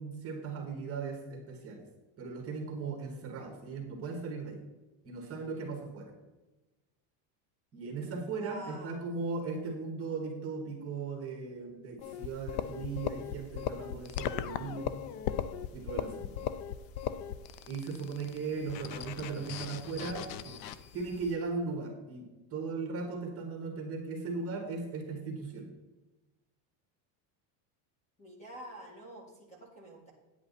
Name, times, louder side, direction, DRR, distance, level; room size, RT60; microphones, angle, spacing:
voice 1, 0.0-1.8 2.2-4.6 5.0-6.1 7.7-14.9 15.7-16.3 17.7-20.6 20.9-22.2 22.5-25.7, right 4 dB, 30° right, 1 dB, 1.9 m, -38 dB
voice 2, 8.3-9.0 18.7-19.0 28.2-30.1, right 1 dB, 15° left, -1 dB, 1.9 m, -47 dB
sound 1, 12.0-21.3, left 10 dB, 80° left, 0.8 m, -38 dB
9.6 x 8.5 x 4.1 m, 1.1 s
cardioid pair, 165°, 49 cm